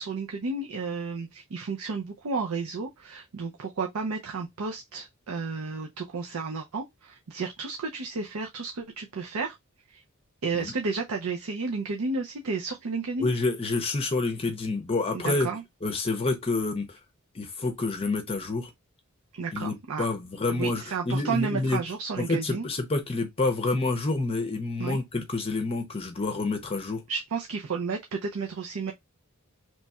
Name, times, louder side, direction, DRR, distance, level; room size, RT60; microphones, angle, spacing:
voice 1, 0.0-9.6 9.9-10.0 10.4-13.3 15.1-15.6 19.3-20.0 20.5-22.7 24.8-25.0 27.1-28.9, right 4 dB, 85° right, 0.6 m, -32 dB
voice 2, 13.2-15.5 15.8-17.0 17.3-18.7 19.5-21.8 22.2-27.0, left 3 dB, 25° left, 0.6 m, -28 dB
3.0 x 2.3 x 4.1 m
head